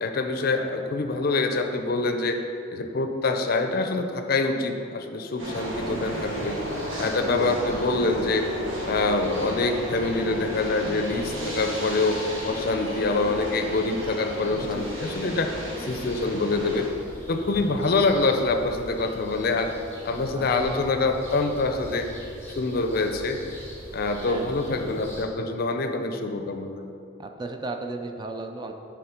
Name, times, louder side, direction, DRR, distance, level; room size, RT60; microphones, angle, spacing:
voice 1, 0.0-2.4 2.7-6.6 7.0-8.5 8.8-12.2 12.5-15.5 15.8-16.9 17.3-19.7 20.0-22.1 22.5-23.4 23.9-26.8, left 3 dB, 50° left, 6 dB, 0.5 m, -25 dB
sound 1, 5.4-16.9, right 1 dB, 85° right, 1.4 m, -33 dB
sound 2, 5.5-25.2, right 1 dB, 10° left, 1.3 m, -42 dB
voice 2, 20.3-20.7 24.2-24.5 27.2-28.7, right 3 dB, 20° right, 4 dB, 0.4 m, -35 dB
7.0 x 3.6 x 5.0 m, 2.6 s
head